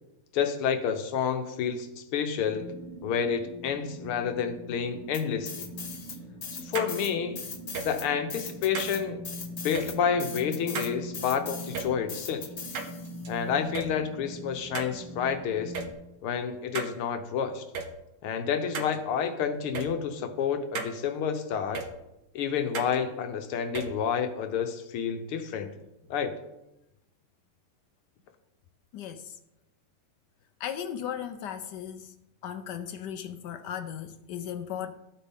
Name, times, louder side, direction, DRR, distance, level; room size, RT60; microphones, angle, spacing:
voice 1, 0.3-2.7 3.0-5.7 6.5-7.4 7.8-9.2 9.6-12.5 13.3-15.7 16.2-17.6 18.2-21.8 22.3-25.7 26.1-26.3, left 7 dB, 90° left, 1.9 m, -29 dB
sound 1, 2.5-15.9, equal, 90° right, 2.3 m, -42 dB
sound 2, 5.1-6.2 6.4-13.2, left 5 dB, 45° left, 0.8 m, -40 dB
sound 3, 6.7-6.9 7.7-7.9 8.7-9.0 9.7-9.9 10.7-10.9 11.7-11.9 12.7-13.3 13.7-13.9 14.7-15.0 15.7-15.9 16.7-16.9 17.7-17.9 18.7-19.0 19.7-19.9 20.7-20.9 21.7-21.9 22.7-23.0 23.7-23.9, right 5 dB, 60° right, 1.4 m, -33 dB
voice 2, 28.9-29.4 30.6-32.1 32.4-34.9, left 9 dB, 70° left, 1.0 m, -36 dB
13.5 x 8.9 x 3.6 m
omnidirectional pair, 2.4 m